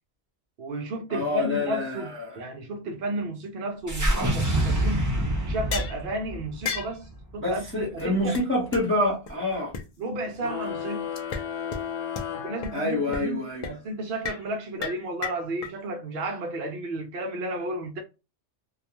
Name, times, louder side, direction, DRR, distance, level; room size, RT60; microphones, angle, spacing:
voice 1, 0.6-5.1 5.4-8.4 10.0-11.1 12.4-18.0, right 1 dB, 60° right, 0.6 m, -32 dB
voice 2, 1.1-2.4 7.4-9.7 12.7-13.7, left 1 dB, 10° left, 1.0 m, -27 dB
sound 1, 3.9-8.2, right 1 dB, 20° right, 0.6 m, -27 dB
sound 2, 5.7-6.0 6.6-6.9 7.7-7.8 8.0-8.1 8.3-8.4 8.7-8.8 9.3-9.4 9.7-9.8 11.2-11.4 11.7-11.8 12.1-12.2 12.6-12.7 13.1-13.3 13.6-13.7 14.2-14.4 14.8-15.7, left 6 dB, 60° left, 0.4 m, -32 dB
sound 3, 10.4-13.4, left 8 dB, 85° left, 1.0 m, -34 dB
2.3 x 2.3 x 2.8 m
omnidirectional pair, 1.2 m